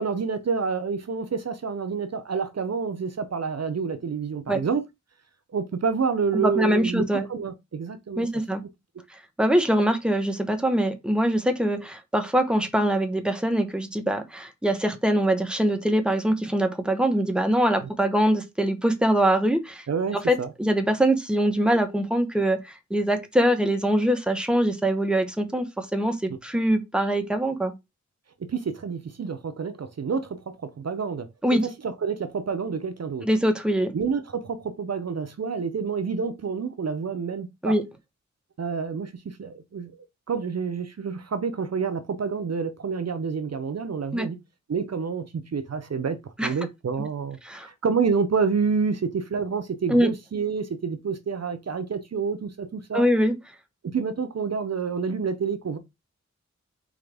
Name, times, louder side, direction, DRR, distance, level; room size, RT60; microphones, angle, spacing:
voice 1, 0.0-4.8 5.5-8.3 17.8-17.9 19.9-20.5 26.3-26.4 28.5-33.3 33.9-37.8 38.6-39.9 40.3-44.4 44.7-53.1 53.9-55.8, right 5 dB, 60° right, 0.6 m, -28 dB
voice 2, 6.3-7.3 8.2-8.6 9.4-19.8 20.1-27.7 31.4-31.6 33.2-33.9 37.6-37.8 44.1-44.3 46.4-46.5 47.4-47.7 49.9-50.1 52.9-53.3, right 1 dB, 5° right, 1.1 m, -23 dB
4.2 x 3.7 x 3.4 m
wide cardioid pair, 50°, 29 cm